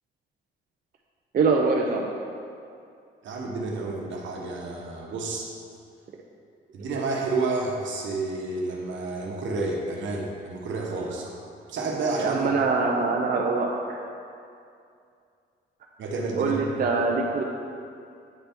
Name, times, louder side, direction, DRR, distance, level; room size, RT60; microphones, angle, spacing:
voice 1, 1.3-2.2 12.2-14.0 16.4-17.4, right 4 dB, 50° right, -1 dB, 0.6 m, -24 dB
voice 2, 3.2-5.5 6.7-11.3 11.7-12.5 16.0-16.6, right 3 dB, 70° right, -1 dB, 1.1 m, -30 dB
8.9 x 3.3 x 4.4 m, 2.4 s
cardioid pair, 90°, 20 cm